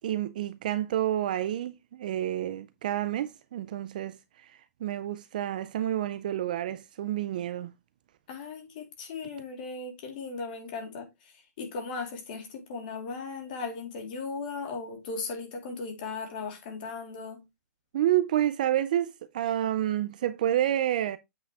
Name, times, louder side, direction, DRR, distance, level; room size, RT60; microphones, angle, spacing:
voice 1, 0.0-7.7 17.9-21.2, right 12 dB, 30° right, 0.3 m, -29 dB
voice 2, 8.3-11.1 11.6-17.4, left 4 dB, 30° left, 2.4 m, -37 dB
8.1 x 5.0 x 3.4 m
hypercardioid pair, 175°, 9 cm